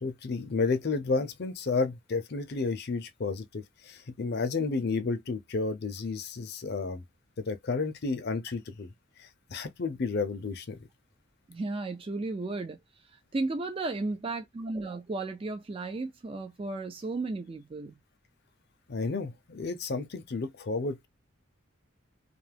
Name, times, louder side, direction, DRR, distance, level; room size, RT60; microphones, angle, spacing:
voice 1, 0.0-7.0 7.4-8.9 9.2-10.9 18.9-21.1, left 4 dB, 50° left, 0.5 m, -31 dB
voice 2, 11.5-18.0, right 3 dB, 25° right, 0.3 m, -34 dB
2.5 x 2.4 x 3.3 m
head